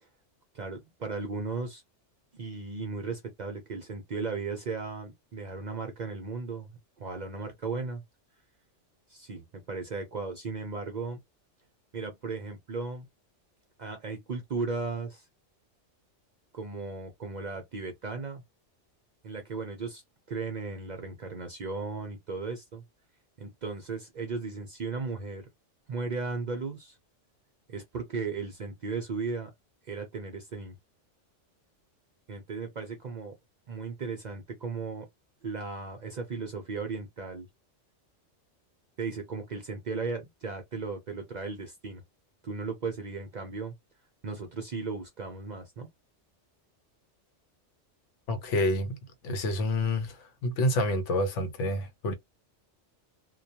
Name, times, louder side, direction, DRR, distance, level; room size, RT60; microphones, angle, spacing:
voice 1, 0.5-1.8 2.3-8.0 9.1-11.2 11.9-13.1 13.8-15.3 16.5-18.4 19.2-20.0 20.3-22.8 23.4-25.5 25.9-27.0 27.7-29.5 29.8-30.7 32.3-33.3 33.7-35.1 35.4-37.5 39.0-42.0 42.4-43.7 44.2-45.9, right 4 dB, 55° right, 0.5 m, -36 dB
voice 2, 48.3-49.0 49.2-52.1, left 1 dB, 80° left, 1.0 m, -28 dB
2.2 x 2.2 x 2.7 m
omnidirectional pair, 1.2 m